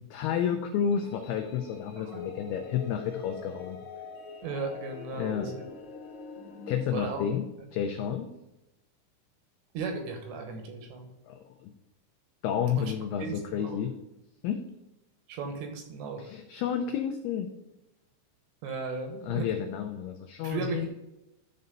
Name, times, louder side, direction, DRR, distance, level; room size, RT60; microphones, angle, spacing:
voice 1, 0.1-3.8 5.2-5.5 6.7-7.5 7.7-8.3 11.3-11.7 12.4-13.9 14.4-14.6 16.2-17.5 19.2-20.9, left 8 dB, 85° left, 5 dB, 2.2 m, -31 dB
sound 1, 0.8-6.9, left 4 dB, 65° left, 2.6 m, -45 dB
voice 2, 4.4-5.6 6.9-7.2 9.7-11.1 12.8-12.9 13.2-13.8 15.3-16.3 18.6-19.5 20.4-20.9, right 4 dB, 75° right, 5 dB, 3.0 m, -36 dB
11.5 x 4.1 x 5.3 m, 0.92 s
omnidirectional pair, 5.4 m